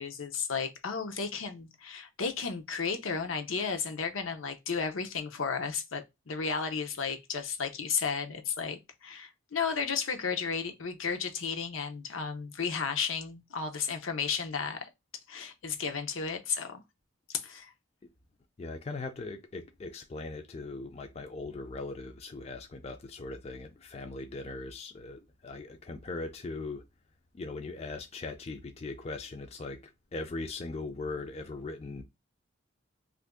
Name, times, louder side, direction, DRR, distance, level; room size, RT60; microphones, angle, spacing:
voice 1, 0.0-14.9 15.3-16.8 17.3-17.7, left 5 dB, 80° left, 0.7 m, -33 dB
voice 2, 18.6-26.8 27.3-29.8 30.1-32.0, left 3 dB, 30° left, 0.4 m, -39 dB
3.0 x 2.5 x 3.5 m
head